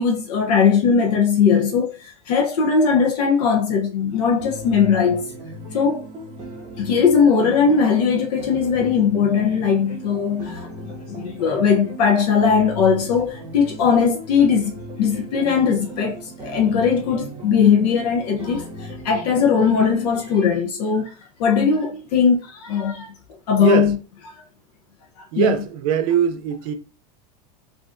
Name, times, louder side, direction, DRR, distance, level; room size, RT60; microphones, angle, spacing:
voice 1, 0.0-5.3 5.7-6.0 6.8-14.7 15.0-21.1 21.4-23.1 23.5-24.0 25.2-25.5, left 6 dB, 80° left, 0.6 m, -19 dB
sound 1, 4.4-20.4, right 1 dB, 20° right, 0.9 m, -37 dB
voice 2, 25.3-26.7, right 8 dB, 60° right, 0.6 m, -21 dB
3.3 x 2.5 x 2.4 m
supercardioid pair, 145°, 20 cm